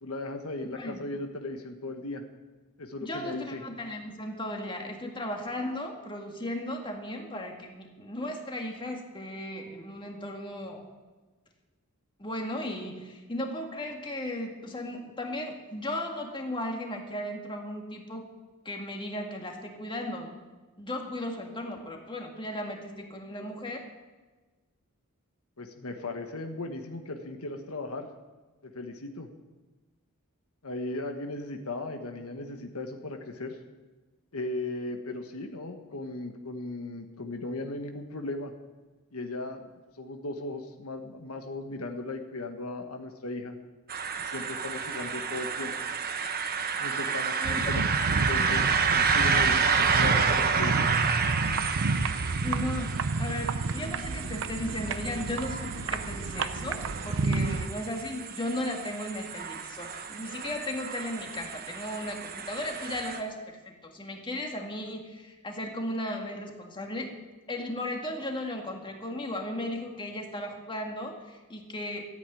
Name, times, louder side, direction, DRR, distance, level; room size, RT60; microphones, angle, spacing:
voice 1, 0.0-2.2 2.8-3.6 25.6-28.1 28.6-29.3 30.6-33.6 34.3-38.5 39.1-39.6 40.0-43.6 44.2-45.7 46.8-50.9, left 2 dB, 75° left, 5 dB, 1.3 m, -37 dB
voice 2, 0.7-1.0 3.0-10.8 12.2-18.3 18.7-20.5 20.8-23.8 47.4-47.8 52.4-67.1 67.5-72.1, left 1 dB, 20° left, 2 dB, 2.0 m, -36 dB
sound 1, 43.9-63.2, right 6 dB, 45° right, 1.1 m, -30 dB
sound 2, 47.4-57.7, right 3 dB, 60° right, 0.7 m, -31 dB
14.0 x 8.7 x 9.2 m, 1.2 s
head